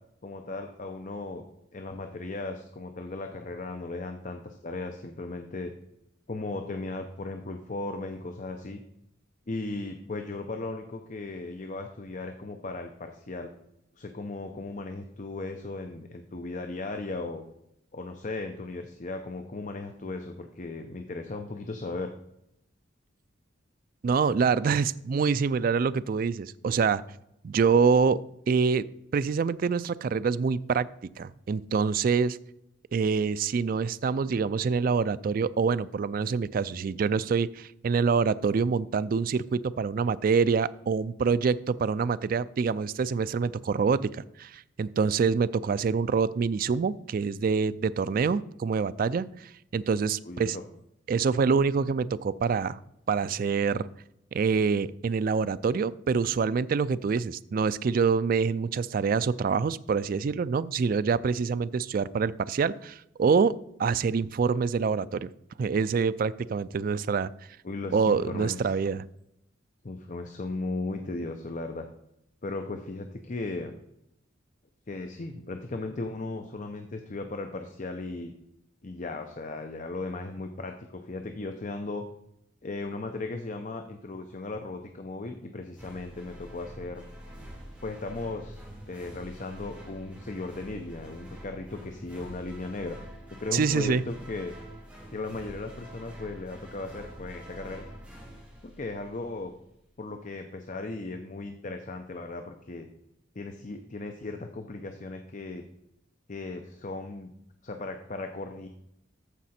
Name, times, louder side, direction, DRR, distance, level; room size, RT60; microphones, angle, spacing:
voice 1, 0.2-1.4 1.7-5.7 6.3-8.8 9.5-13.5 14.0-17.4 17.9-22.1 50.3-50.6 67.6-68.7 69.8-71.9 72.4-73.7 74.9-78.3 78.8-82.1 82.6-87.1 87.8-88.6 88.9-93.0 93.3-94.5 95.1-97.8 98.6-99.5 100.0-102.9 103.4-105.6 106.3-107.3 107.6-108.7, left 2 dB, 40° left, 6 dB, 0.7 m, -36 dB
voice 2, 24.0-27.0 27.4-28.2 28.5-28.9 29.1-30.9 31.2-32.4 32.9-50.6 51.1-52.8 53.1-53.9 54.3-65.3 65.6-67.3 67.9-69.0 93.5-94.0, right 5 dB, 45° right, 16 dB, 0.3 m, -26 dB
sound 1, 85.7-99.4, equal, 5° right, 2.2 m, -46 dB
14.0 x 5.0 x 4.3 m, 0.81 s
head